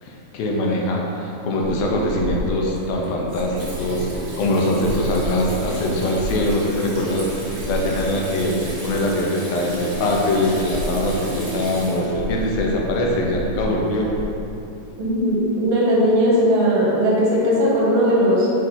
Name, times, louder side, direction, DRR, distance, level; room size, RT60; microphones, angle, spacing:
voice 1, 0.0-14.1, left 1 dB, 75° left, -2 dB, 1.7 m, -22 dB
Water tap faucet / Sink (filling or washing), 1.6-14.3, right 1 dB, 35° right, 1.2 m, -30 dB
voice 2, 15.0-18.5, equal, 70° right, -5 dB, 2.4 m, -18 dB
6.5 x 3.1 x 5.6 m, 2.9 s
omnidirectional pair, 3.7 m